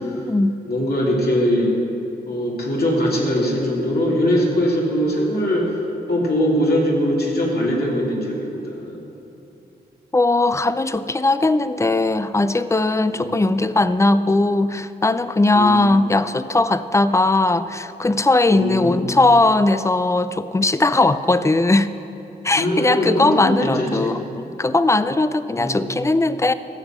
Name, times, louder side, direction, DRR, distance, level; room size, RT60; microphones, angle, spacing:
voice 1, 0.0-0.6 10.1-21.9 22.4-26.5, left 2 dB, 15° left, 13 dB, 0.5 m, -19 dB
voice 2, 0.7-1.8 2.3-5.7 6.1-9.0 13.1-13.4 15.5-15.9 18.5-19.1 22.6-24.2 25.6-25.9, equal, 65° left, -3 dB, 2.7 m, -21 dB
14.0 x 7.9 x 5.9 m, 2.9 s
cardioid pair, 65°, 17 cm